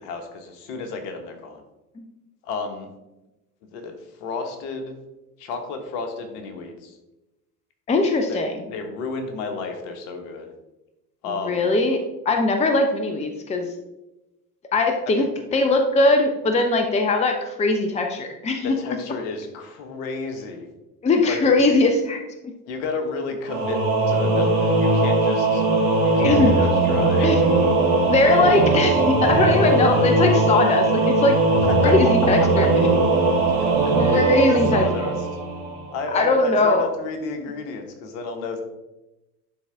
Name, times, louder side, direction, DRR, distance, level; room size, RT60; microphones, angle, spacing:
voice 1, 0.0-1.6 2.4-2.9 3.7-3.9 4.2-4.9 5.4-6.9 8.3-8.4 8.7-10.5 11.2-11.7 15.1-15.3 18.6-20.7 21.3-21.6 22.7-23.8 24.1-25.6 26.2-27.3 31.7-31.9 32.4-32.7 33.6-33.7 34.1-35.2 35.9-38.6, left 4 dB, 55° left, 5 dB, 1.3 m, -31 dB
voice 2, 7.9-8.6 11.4-12.0 12.3-13.7 14.7-15.3 15.5-18.8 21.0-22.2 26.2-26.5 27.2-27.4 28.1-31.4 31.8-32.9 33.2-33.3 33.9-34.9 36.1-36.9, left 2 dB, 15° left, 5 dB, 0.7 m, -20 dB
Singing / Musical instrument, 23.5-35.9, right 2 dB, 70° right, 1.9 m, -19 dB
11.0 x 3.9 x 3.5 m, 1.0 s
figure-of-eight pair, 65°, 46 cm